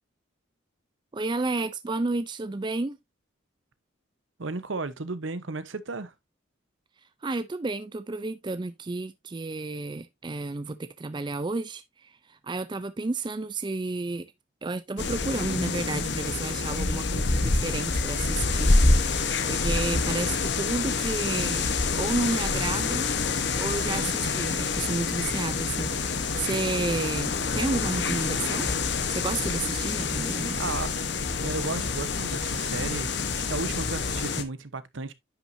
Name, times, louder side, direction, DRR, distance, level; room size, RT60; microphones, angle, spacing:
voice 1, 1.1-3.0 7.2-14.3 14.6-21.7 22.0-23.1 23.6-28.7 29.1-30.6, right 3 dB, 25° right, 0.4 m, -31 dB
voice 2, 4.4-6.1 30.6-30.9 31.4-35.1, right 3 dB, 70° right, 0.9 m, -34 dB
sound 1, 15.0-34.4, left 4 dB, 55° left, 1.0 m, -27 dB
10.0 x 6.0 x 2.6 m
head